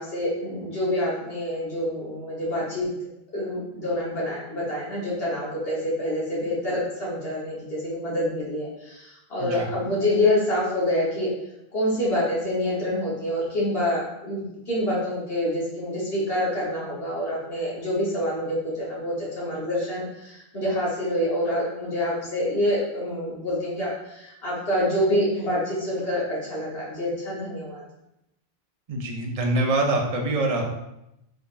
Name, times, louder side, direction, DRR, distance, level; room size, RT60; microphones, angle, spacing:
voice 1, 0.0-2.9 3.3-11.3 11.7-27.8, left 1 dB, 70° left, -7 dB, 1.4 m, -27 dB
voice 2, 28.9-30.6, right 2 dB, 45° right, 1 dB, 0.6 m, -24 dB
3.8 x 3.4 x 2.5 m, 0.85 s
omnidirectional pair, 1.0 m